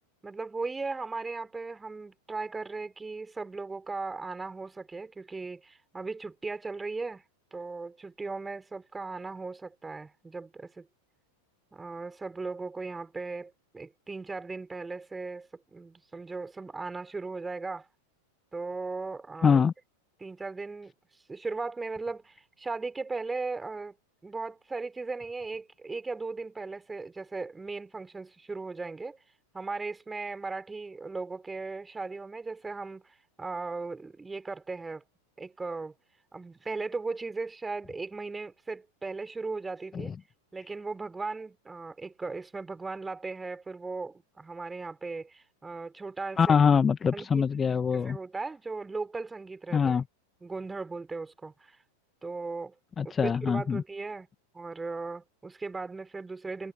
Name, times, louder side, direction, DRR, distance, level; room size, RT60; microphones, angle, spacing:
voice 1, 0.2-7.2 7.5-10.9 11.7-17.9 18.5-19.6 20.2-20.9 21.3-23.9 24.2-29.2 29.5-35.0 35.4-35.9 36.3-40.1 40.5-46.6 47.1-47.5 47.9-50.0 50.4-51.8 52.2-52.7 53.0-54.3 54.5-56.7, right 3 dB, 10° right, 3.6 m, -37 dB
voice 2, 19.4-19.7 39.9-40.1 46.4-48.2 49.7-50.0 53.0-53.8, left 6 dB, 20° left, 1.3 m, -24 dB
figure-of-eight pair, 90°, 0 cm